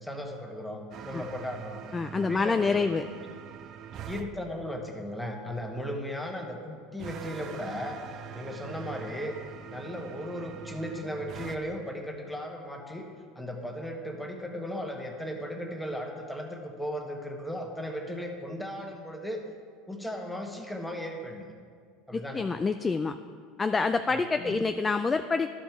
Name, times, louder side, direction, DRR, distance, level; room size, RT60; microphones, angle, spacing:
voice 1, 0.0-1.8 2.2-2.8 4.1-8.0 8.3-9.4 9.7-13.1 13.3-19.4 19.9-21.5 22.1-22.4 24.1-24.6, equal, 5° left, 2 dB, 1.3 m, -36 dB
sound 1, 0.9-4.3 7.0-11.6, right 8 dB, 50° right, 0.5 m, -43 dB
voice 2, 1.9-3.1 22.1-23.2 23.6-25.5, left 4 dB, 20° left, 9 dB, 0.3 m, -27 dB
12.0 x 5.3 x 4.6 m, 2.1 s
hypercardioid pair, 90°, 0 cm